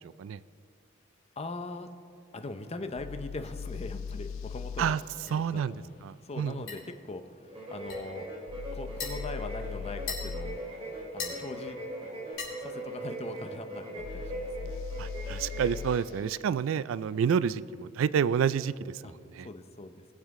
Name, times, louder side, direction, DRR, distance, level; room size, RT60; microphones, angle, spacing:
voice 1, 1.4-1.9 2.3-5.0 5.3-8.3 8.7-11.8 12.6-14.7 16.1-16.2 19.0-19.1 19.4-20.0, left 2 dB, 30° left, 8 dB, 0.6 m, -41 dB
sound 1, 2.9-5.0 8.5-10.6 14.0-16.1, left 6 dB, 80° left, 0.4 m, -39 dB
sound 2, 3.4-13.1, left 5 dB, 65° left, 3.3 m, -45 dB
voice 2, 5.3-5.7 6.0-6.6 15.0-19.5, right 7 dB, 80° right, 17 dB, 0.3 m, -29 dB
sound 3, 7.5-16.1, right 1 dB, 30° right, 3.0 m, -40 dB
19.0 x 7.4 x 3.6 m, 2.2 s
head